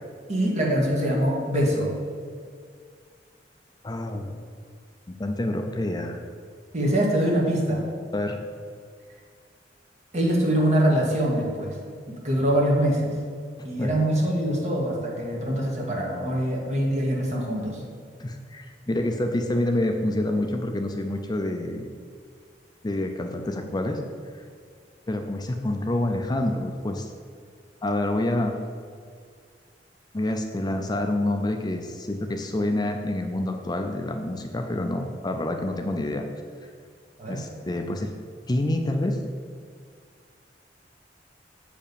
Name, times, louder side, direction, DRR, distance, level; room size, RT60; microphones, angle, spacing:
voice 1, 0.3-1.9 6.7-7.8 10.1-11.8 12.2-13.1 13.6-17.8 37.2-37.4, right 1 dB, 40° right, -2 dB, 1.9 m, -24 dB
voice 2, 3.8-4.4 5.1-6.2 8.1-8.4 13.8-13.9 18.2-21.9 22.8-24.0 24.3-24.4 25.1-27.1 27.8-28.6 30.1-36.3 37.3-38.1 38.5-39.2, left 1 dB, 25° left, 4 dB, 0.5 m, -27 dB
7.8 x 5.1 x 6.9 m, 2.1 s
head